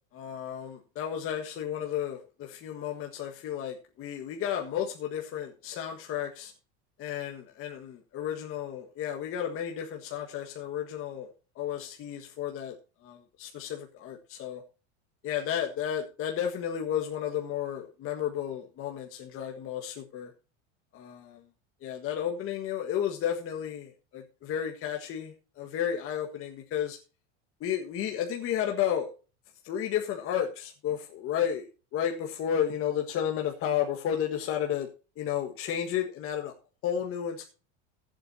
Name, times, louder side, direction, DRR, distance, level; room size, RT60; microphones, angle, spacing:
voice 1, 0.1-6.5 7.0-12.8 13.0-14.6 15.2-20.3 20.9-21.4 21.8-27.0 27.6-29.1 29.6-34.9 35.2-36.5 36.8-37.4, left 9 dB, 40° left, 2 dB, 1.6 m, -32 dB
19.0 x 8.0 x 2.7 m, 0.35 s
supercardioid pair, 145°, 35 cm